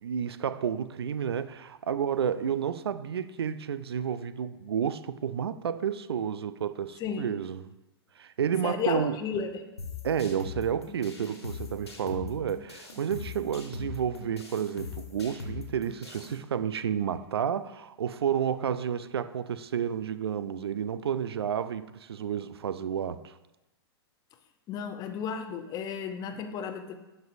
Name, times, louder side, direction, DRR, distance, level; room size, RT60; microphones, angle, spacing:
voice 1, 0.0-7.8 8.2-9.2 10.0-23.4, right 8 dB, 75° right, 0.4 m, -31 dB
voice 2, 7.0-7.4 8.6-9.5 24.7-26.9, left 7 dB, 30° left, 0.7 m, -33 dB
sound 1, 9.8-16.4, left 5 dB, 85° left, 1.4 m, -41 dB
10.5 x 5.3 x 2.6 m
figure-of-eight pair, 105°, 13 cm